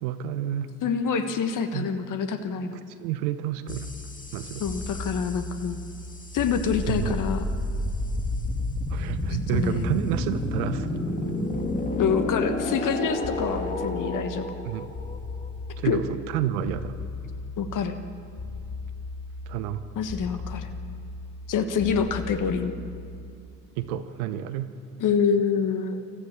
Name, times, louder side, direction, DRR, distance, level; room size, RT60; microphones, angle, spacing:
voice 1, 0.0-0.7 1.7-1.9 2.9-3.9 4.3-4.6 6.9-7.2 8.9-11.0 14.6-14.9 15.8-17.0 19.5-19.8 20.3-20.4 23.8-24.7, right 11 dB, 70° right, 12 dB, 1.1 m, -30 dB
voice 2, 0.8-2.8 4.6-5.8 6.3-7.4 9.5-9.9 12.0-14.5 15.8-16.0 17.6-17.9 19.9-20.7 21.5-22.7 25.0-26.0, left 6 dB, 45° left, 8 dB, 1.5 m, -26 dB
sound 1, 3.7-23.3, left 2 dB, 15° left, 2.3 m, -32 dB
26.0 x 14.5 x 7.4 m, 2.3 s
hypercardioid pair, 65°, 45 cm